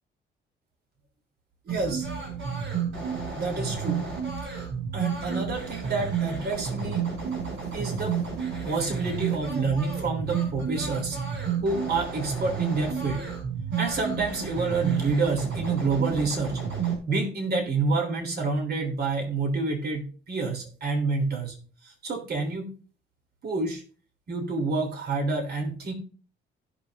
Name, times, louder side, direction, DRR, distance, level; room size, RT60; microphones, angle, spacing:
voice 1, 1.6-2.1 3.3-4.0 4.4-4.7 4.9-7.0 7.7-8.2 8.6-11.2 11.6-13.3 13.8-16.6 17.1-21.6 21.8-22.7 23.4-23.8 24.3-25.9, right 3 dB, 55° right, 2 dB, 3.3 m, -28 dB
sound 1, 1.7-17.0, right 7 dB, 75° right, 5.5 m, -31 dB
16.5 x 6.1 x 2.6 m, 0.39 s
cardioid pair, 90°, 20 cm